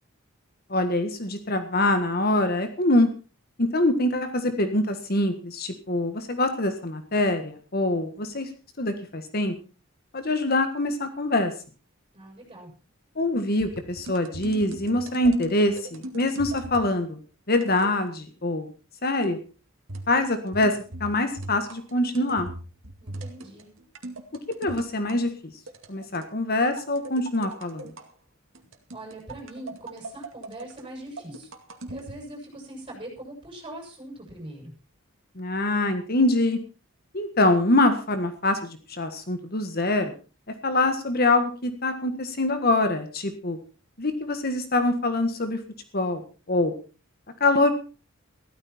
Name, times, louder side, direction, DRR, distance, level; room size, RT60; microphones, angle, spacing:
voice 1, 0.7-3.1 3.6-8.5 8.8-9.5 10.1-11.5 13.2-17.2 17.5-18.7 19.0-19.4 20.1-22.5 24.6-25.5 25.9-27.9 35.4-36.6 37.1-40.1 40.6-43.6 44.0-45.6 45.9-46.2 46.5-46.7 47.4-47.7, left 2 dB, 45° left, 8 dB, 1.6 m, -24 dB
voice 2, 12.1-12.7 23.0-23.6 28.9-31.5 31.9-34.7, right 1 dB, 25° right, 0 dB, 7.4 m, -41 dB
sound 1, 13.6-16.9 17.5-18.0 19.9-25.2 25.7-26.3 26.8-28.1 28.6-32.2, right 2 dB, 70° right, 2.3 m, -40 dB
15.5 x 13.5 x 4.4 m, 0.35 s
head